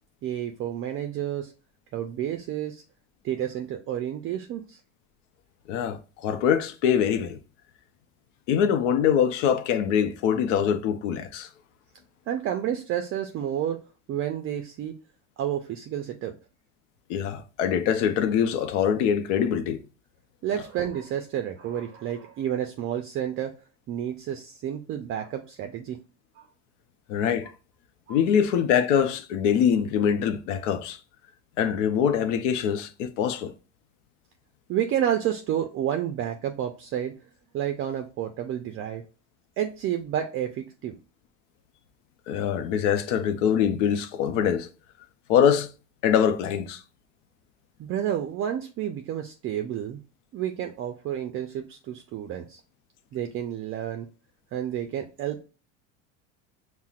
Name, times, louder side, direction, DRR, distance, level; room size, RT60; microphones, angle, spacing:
voice 1, 0.2-1.5 1.9-2.8 3.2-4.8 12.3-13.8 14.1-15.0 15.4-16.3 20.4-23.5 23.9-26.0 26.4-26.5 28.1-28.2 34.7-37.1 37.5-39.0 39.6-41.0 47.8-50.0 50.3-52.6 53.1-54.1 54.5-55.4, right 10 dB, 40° right, 0.4 m, -30 dB
voice 2, 5.7-7.4 8.5-11.5 17.1-19.8 27.1-27.5 28.1-31.0 31.6-33.5 42.3-44.7 45.3-45.7 46.0-46.8, left 8 dB, 85° left, 0.6 m, -24 dB
5.5 x 2.1 x 2.3 m
supercardioid pair, 120°, 36 cm